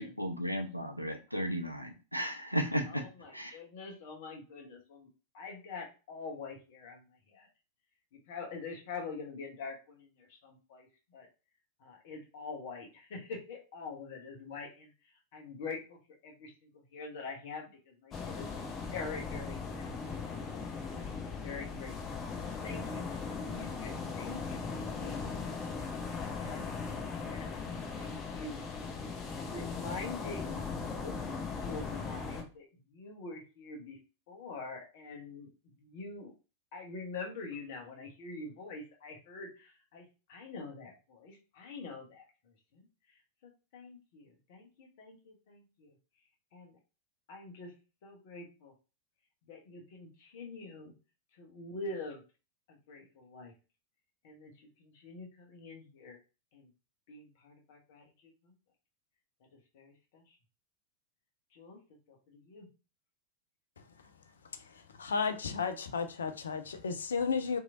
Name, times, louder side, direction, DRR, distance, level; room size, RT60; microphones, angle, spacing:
voice 1, 0.0-3.1 3.3-3.6, equal, 90° right, 0.5 m, -34 dB
voice 2, 2.9-5.1 5.3-7.5 8.3-11.3 11.8-19.9 20.2-20.4 21.0-22.2 22.6-26.6 27.2-27.5 27.9-28.7 29.3-30.6 30.9-31.2 31.5-34.0 34.3-36.3 36.7-45.9 46.5-46.8 47.3-47.7 48.0-48.7 49.4-50.9 51.3-52.2 52.7-53.5 54.2-56.2 56.5-56.7 57.1-58.5 59.7-60.4 61.5-61.8 62.1-62.7, left 4 dB, 50° left, 0.9 m, -45 dB
sound 1, 18.1-32.4, left 4 dB, 25° left, 0.7 m, -39 dB
voice 3, 65.0-67.6, left 5 dB, 70° left, 0.4 m, -33 dB
2.9 x 2.7 x 2.5 m
figure-of-eight pair, 90°, 0 cm